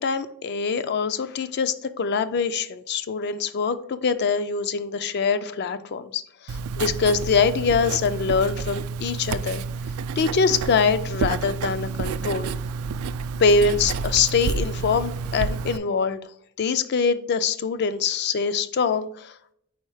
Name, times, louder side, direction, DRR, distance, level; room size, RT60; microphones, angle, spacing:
voice 1, 0.0-9.6 10.2-12.5 13.4-16.2 16.6-19.3, left 5 dB, 50° left, 12 dB, 0.4 m, -24 dB
Writing, 6.5-15.8, right 5 dB, 80° right, 0.3 m, -29 dB
4.6 x 4.3 x 4.7 m, 0.70 s
head